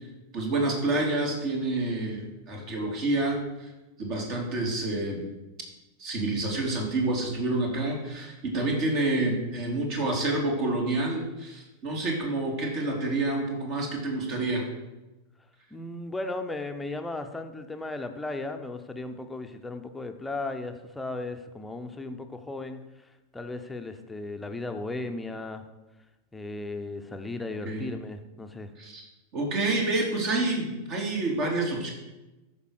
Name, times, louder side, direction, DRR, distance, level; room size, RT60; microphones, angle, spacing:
voice 1, 0.3-3.7 4.0-5.3 6.0-14.7 27.6-27.9 28.8-29.0 29.3-31.9, right 2 dB, 40° right, 1 dB, 3.1 m, -28 dB
voice 2, 15.7-22.8 23.3-25.6 26.3-28.7, left 2 dB, 10° left, 6 dB, 0.9 m, -36 dB
13.5 x 5.4 x 6.6 m, 1.0 s
figure-of-eight pair, 90°, 0 cm